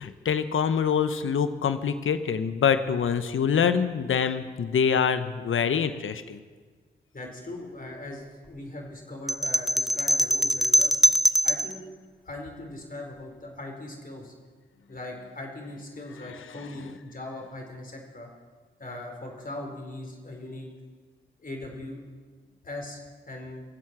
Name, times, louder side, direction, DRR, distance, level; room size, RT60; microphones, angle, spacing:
voice 1, 0.0-6.4 16.2-16.4, left 7 dB, 70° left, 11 dB, 0.9 m, -25 dB
voice 2, 7.1-11.0 11.4-11.8 12.2-14.3 14.9-18.3 18.8-20.7 21.4-22.0 22.6-23.0 23.3-23.6, left 2 dB, 40° left, 1 dB, 4.3 m, -39 dB
sound 1, 9.3-11.8, equal, ahead, 0.7 m, -22 dB
23.0 x 7.9 x 6.1 m, 1.5 s
supercardioid pair, 40°, 21 cm